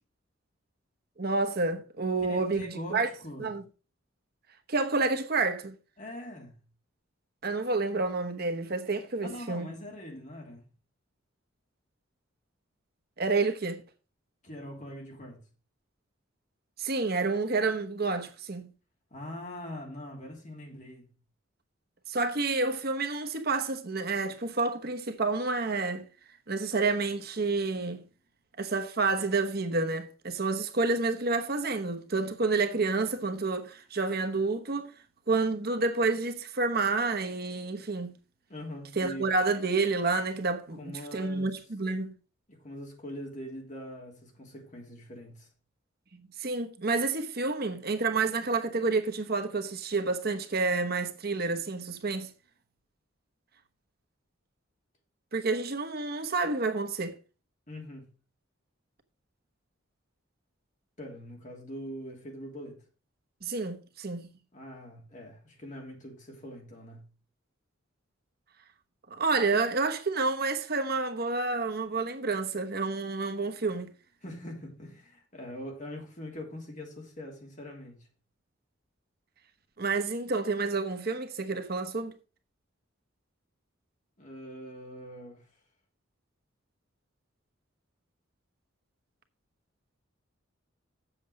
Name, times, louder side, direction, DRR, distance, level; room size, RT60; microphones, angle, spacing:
voice 1, 1.2-3.1 3.4-3.6 4.7-5.8 7.4-9.7 13.2-13.8 16.8-18.7 22.1-26.1 26.5-28.0 28.6-34.9 35.3-38.2 39.0-42.1 46.1-52.3 55.3-57.2 63.4-64.3 69.1-73.9 79.8-82.1, right 3 dB, 50° right, 1.0 m, -29 dB
voice 2, 2.2-3.5 6.0-6.5 9.2-10.6 14.4-15.4 19.1-21.1 38.5-39.3 40.8-41.5 42.5-45.5 57.7-58.1 61.0-62.8 64.5-67.0 74.2-78.1 84.2-85.5, left 1 dB, 40° left, 3.1 m, -42 dB
7.8 x 7.5 x 5.2 m
head